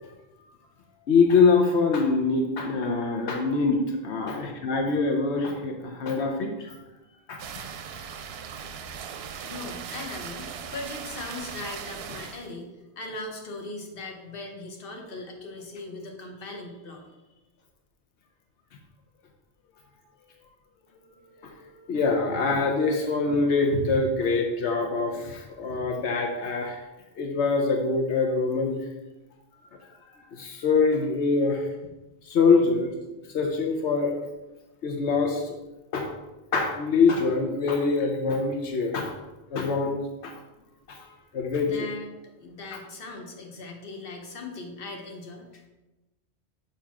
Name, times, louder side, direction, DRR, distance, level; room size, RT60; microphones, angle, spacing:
voice 1, 1.1-6.8 7.3-7.4 21.2-26.8 27.2-28.8 29.7-29.8 30.3-31.7 32.2-32.9 33.3-34.1 34.8-35.5 35.9-36.1 36.5-39.1 39.5-40.3 40.9-41.9, left 4 dB, 85° left, 2 dB, 1.0 m, -24 dB
sound 1, 7.4-12.5, right 7 dB, 70° right, 0.7 m, -38 dB
voice 2, 9.4-17.0 41.6-42.1 42.4-45.7, left 2 dB, 55° left, 1 dB, 1.2 m, -39 dB
6.8 x 3.0 x 5.7 m, 1.1 s
omnidirectional pair, 1.1 m